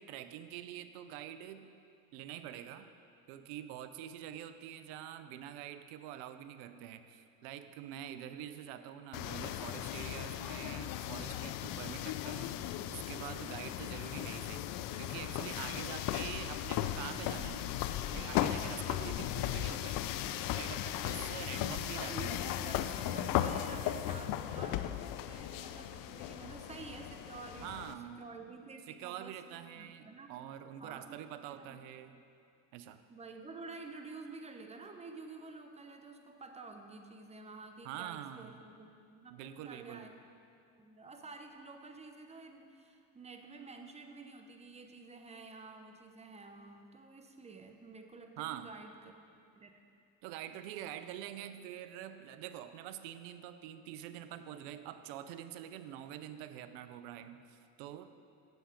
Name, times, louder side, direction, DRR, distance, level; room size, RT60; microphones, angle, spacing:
voice 1, 0.0-1.7 2.1-2.9 3.3-14.7 15.0-17.7 18.1-20.0 20.5-22.3 27.6-28.3 28.9-32.2 32.7-33.0 37.8-38.5 39.3-40.1 48.4-48.7 50.2-58.1, right 11 dB, 70° right, 11 dB, 0.6 m, -46 dB
sound 1, 9.1-27.9, left 12 dB, 50° left, 0.4 m, -37 dB
voice 2, 21.6-30.3 30.8-31.8 33.1-40.4 40.8-49.1 49.5-49.7, right 3 dB, 15° right, 5 dB, 0.7 m, -50 dB
7.9 x 7.1 x 5.0 m, 2.5 s
supercardioid pair, 95°, 46 cm